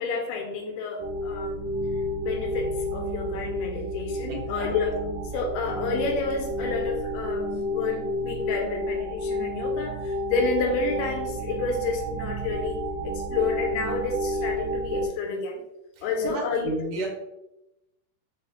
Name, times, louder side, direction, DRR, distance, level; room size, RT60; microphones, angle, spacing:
voice 1, 0.0-1.7 2.2-5.0 5.3-12.8 13.0-15.6 16.0-16.9, left 4 dB, 90° left, 2 dB, 2.3 m, -30 dB
sound 1, 1.0-15.1, equal, 90° right, 1.5 m, -31 dB
voice 2, 4.3-4.7 16.0-17.1, right 2 dB, 70° right, -1 dB, 2.0 m, -32 dB
5.2 x 3.5 x 2.4 m, 0.89 s
omnidirectional pair, 3.7 m